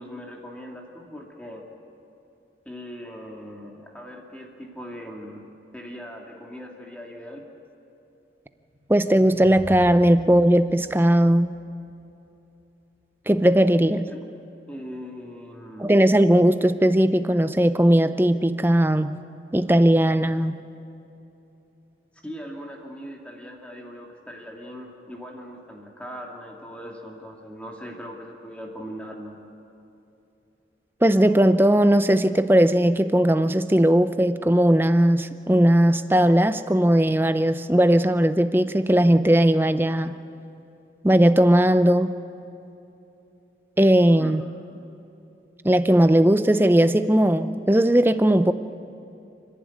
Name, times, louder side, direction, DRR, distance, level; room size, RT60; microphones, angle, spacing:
voice 1, 0.0-1.6 2.7-5.5 5.7-7.4 13.9-14.2 14.7-16.0 22.2-29.4 44.2-44.3, equal, 5° left, 0 dB, 2.1 m, -40 dB
sound 1, 8.6-12.1, equal, 45° right, 3.4 m, -42 dB
voice 2, 8.9-11.5 13.3-14.1 15.8-19.2 19.5-20.6 31.0-40.2 41.0-42.1 43.8-44.4 45.6-48.5, right 1 dB, 10° right, 11 dB, 0.6 m, -18 dB
29.5 x 11.0 x 9.5 m, 2.9 s
head